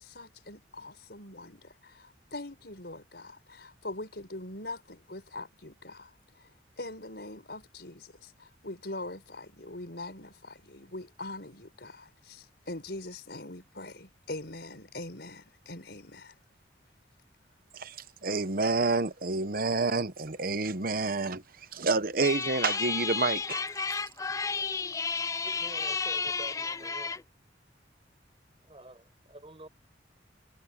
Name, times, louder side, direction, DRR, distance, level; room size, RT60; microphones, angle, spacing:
voice 1, 0.0-6.5 6.8-16.3, left 2 dB, 60° left, 5.9 m, -43 dB
voice 2, 18.2-21.4 21.7-23.6, right 3 dB, 50° right, 1.0 m, -28 dB
sound 1, 22.2-27.2, left 5 dB, 20° left, 0.4 m, -32 dB
voice 3, 25.4-27.3 28.6-29.7, right 1 dB, 30° right, 7.3 m, -48 dB
head